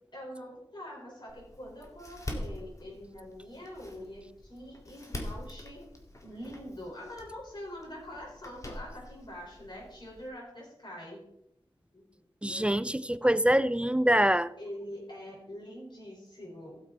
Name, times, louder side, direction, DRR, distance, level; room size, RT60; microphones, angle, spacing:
voice 1, 0.1-5.8 6.2-11.2 11.9-12.2 12.5-12.7 14.6-16.8, left 1 dB, 50° left, 5.4 m, -44 dB
Door, 1.3-10.3, left 1 dB, 35° left, 2.1 m, -44 dB
voice 2, 12.4-14.5, right 1 dB, 10° right, 0.4 m, -25 dB
16.5 x 7.4 x 4.3 m
wide cardioid pair, 80°, 10 cm